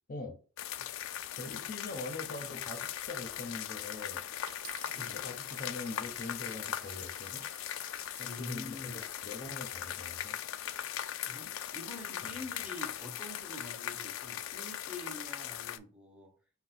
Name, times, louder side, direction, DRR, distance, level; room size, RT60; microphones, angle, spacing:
sound 1, 0.6-15.8, left 10 dB, 80° left, 0.3 m, -39 dB
voice 1, 1.4-4.2 5.0-7.4 8.2-8.9 9.2-10.4, left 2 dB, 45° left, 0.7 m, -43 dB
Coin (dropping), 4.5-8.5 9.2-9.6, right 8 dB, 45° right, 0.6 m, -55 dB
voice 2, 4.8-5.2 8.2-9.0 11.2-16.3, left 2 dB, 5° right, 0.7 m, -46 dB
4.7 x 2.2 x 4.1 m
head